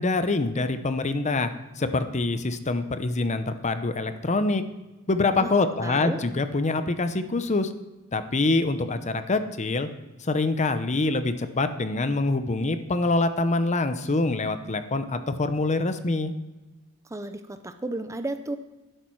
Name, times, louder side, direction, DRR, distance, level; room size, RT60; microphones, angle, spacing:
voice 1, 0.0-4.6 5.1-7.7 8.1-9.9 10.2-16.3, left 3 dB, 30° left, 10 dB, 0.7 m, -25 dB
voice 2, 5.4-6.2 17.0-18.6, right 2 dB, 15° right, 9 dB, 0.5 m, -33 dB
12.0 x 11.5 x 4.6 m, 1.1 s
head